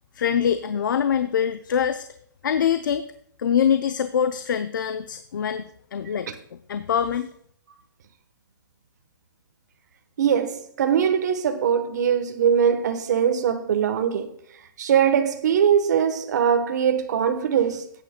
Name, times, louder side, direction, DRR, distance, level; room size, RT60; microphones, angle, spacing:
voice 1, 0.2-2.0 2.4-3.0 3.4-5.6 5.9-6.3 6.7-7.3, left 8 dB, 65° left, 0.6 m, -23 dB
voice 2, 10.2-14.4 14.8-17.9, right 8 dB, 55° right, 1.1 m, -21 dB
17.0 x 8.8 x 2.2 m
hypercardioid pair, 160°, 11 cm